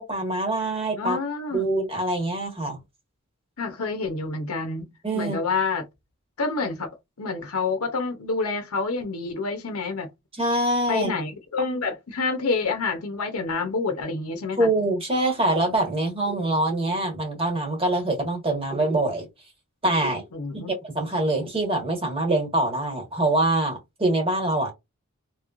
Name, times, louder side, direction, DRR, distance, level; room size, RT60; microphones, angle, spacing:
voice 1, 0.0-1.2 1.5-2.8 5.0-5.4 10.4-11.1 14.6-19.3 19.8-20.2 20.5-24.7, right 2 dB, 25° right, 1.3 m, -24 dB
voice 2, 1.0-1.7 3.6-5.8 6.4-6.9 7.2-10.1 10.9-14.7 20.3-20.7, left 4 dB, 80° left, 0.8 m, -28 dB
3.0 x 2.7 x 2.4 m
head